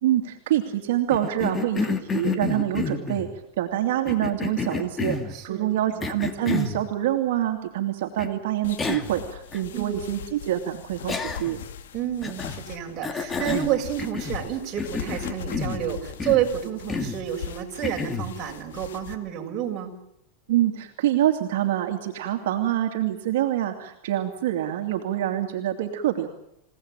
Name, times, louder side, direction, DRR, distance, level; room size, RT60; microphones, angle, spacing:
voice 1, 0.0-3.3 3.6-11.6 20.5-26.3, right 12 dB, 70° right, 3 dB, 2.7 m, -26 dB
Cough, 1.1-3.3 4.1-5.3 6.0-6.8 8.2-8.3 8.8-9.2 9.5-9.6 11.1-11.6 12.2-12.6 13.0-14.5 14.8-15.8 16.2-16.5 16.9-17.2 17.8-18.3, left 4 dB, 15° left, 2.5 m, -29 dB
voice 2, 5.3-6.0 9.7-10.0 11.9-19.9, right 11 dB, 35° right, 1 dB, 6.5 m, -29 dB
sound 1, 8.6-19.1, left 8 dB, 85° left, 2.4 m, -40 dB
28.0 x 18.0 x 9.1 m, 0.81 s
supercardioid pair, 130°, 0 cm